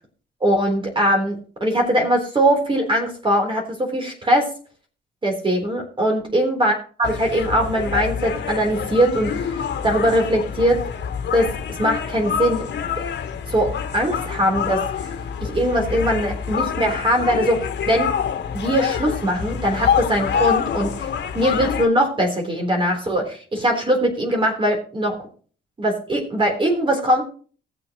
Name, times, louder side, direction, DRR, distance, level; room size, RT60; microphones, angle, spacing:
voice 1, 0.4-4.5 5.2-10.8 11.3-12.7 13.5-15.1 15.4-18.1 18.5-20.9 21.3-25.1 25.8-27.2, right 1 dB, 25° right, 1 dB, 3.8 m, -21 dB
sound 1, 7.0-21.9, left 7 dB, 60° left, 1.5 m, -26 dB
19.0 x 6.9 x 3.1 m, 0.41 s
cardioid pair, 90°, 20 cm